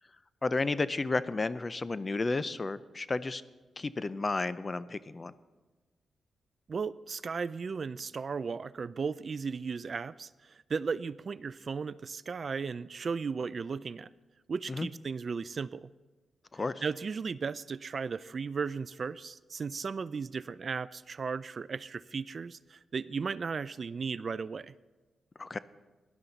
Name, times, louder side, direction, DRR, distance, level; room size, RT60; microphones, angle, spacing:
voice 1, 0.4-3.4 3.8-5.3 14.7-14.9 16.5-16.8 25.4-25.6, left 3 dB, 35° left, 16 dB, 0.5 m, -32 dB
voice 2, 6.7-14.1 14.5-15.9 16.8-24.7, right 5 dB, 50° right, 17 dB, 0.3 m, -36 dB
17.0 x 11.5 x 4.0 m, 1.2 s
cardioid pair, 65°, 0 cm